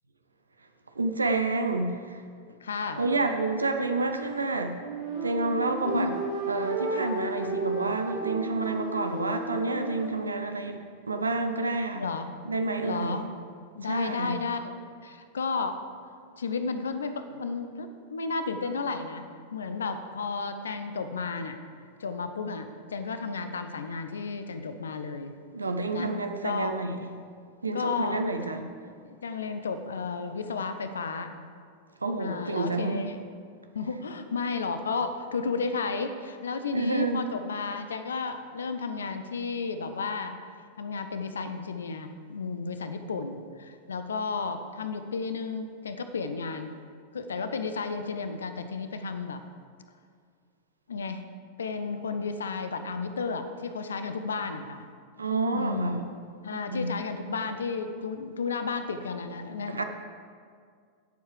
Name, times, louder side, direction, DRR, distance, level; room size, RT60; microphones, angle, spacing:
voice 1, 1.0-2.2 3.0-4.8 5.2-6.1 6.5-12.1 12.5-13.3 13.8-14.4 25.5-27.1 27.6-28.7 32.0-33.0 36.7-37.3 55.2-56.0 56.5-56.9 59.7-59.8, right 3 dB, 80° right, 6 dB, 0.6 m, -29 dB
voice 2, 2.6-3.0 5.9-6.1 12.0-12.3 12.8-13.2 13.7-15.8 16.4-21.6 22.0-25.3 25.9-26.2 26.4-26.7 27.7-28.3 28.5-28.6 29.0-31.3 32.2-33.2 33.7-40.4 40.8-46.7 47.1-49.4 50.9-51.2 51.6-54.8 55.5-56.0 56.4-59.8, left 4 dB, 70° left, 9 dB, 0.6 m, -33 dB
sound 1, 2.9-10.2, right 2 dB, 60° right, 2.7 m, -34 dB
17.0 x 7.1 x 3.3 m, 2.1 s
figure-of-eight pair, 90°, 0 cm